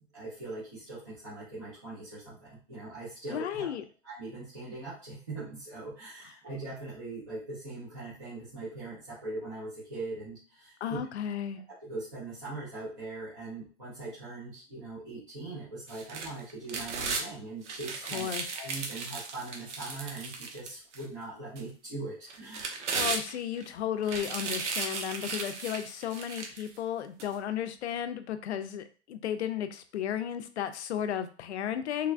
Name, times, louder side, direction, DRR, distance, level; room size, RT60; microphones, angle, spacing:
voice 1, 0.1-3.8 4.0-11.0 11.8-18.3 18.5-23.0, right 2 dB, 15° right, -10 dB, 0.4 m, -41 dB
voice 2, 3.3-3.8 10.8-11.6 18.1-18.5 22.9-32.1, left 9 dB, 70° left, 9 dB, 0.5 m, -34 dB
sound 1, 15.9-17.3 17.6-21.0 21.6-21.7 22.3-23.6 24.0-26.7 27.2-27.3, right 4 dB, 90° right, 0.8 m, -35 dB
3.3 x 2.2 x 2.4 m, 0.38 s
hypercardioid pair, 170°, 35 cm